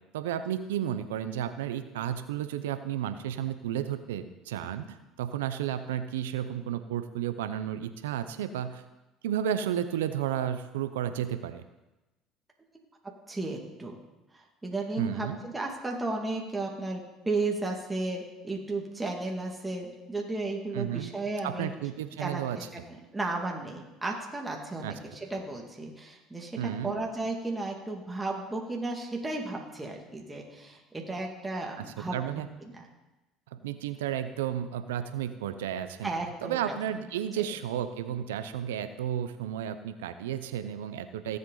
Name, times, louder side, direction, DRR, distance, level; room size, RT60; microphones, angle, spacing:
voice 1, 0.1-4.9 5.2-8.8 9.2-11.6 15.0-15.4 20.7-21.1 21.4-22.6 24.8-25.0 26.6-27.0 32.0-32.5 33.6-36.1 36.4-41.4, right 10 dB, 90° right, 11 dB, 0.7 m, -32 dB
voice 2, 13.3-14.0 14.3-21.7 22.2-32.2 32.6-32.8 36.0-36.6 37.4-37.5, right 2 dB, 15° right, -1 dB, 2.2 m, -34 dB
17.0 x 7.9 x 4.0 m, 1.0 s
hypercardioid pair, 80°, 0 cm